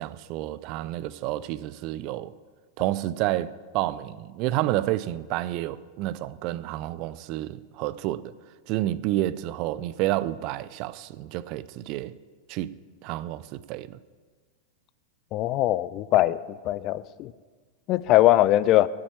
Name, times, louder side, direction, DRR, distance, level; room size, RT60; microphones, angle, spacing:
voice 1, 0.0-2.3 2.8-8.3 8.7-12.1 12.5-12.7 13.0-14.0, right 15 dB, 40° right, 0.4 m, -29 dB
voice 2, 15.3-16.4 16.6-17.3 17.9-18.9, left 15 dB, 35° left, 0.4 m, -21 dB
8.7 x 8.5 x 8.6 m
figure-of-eight pair, 90°, 0 cm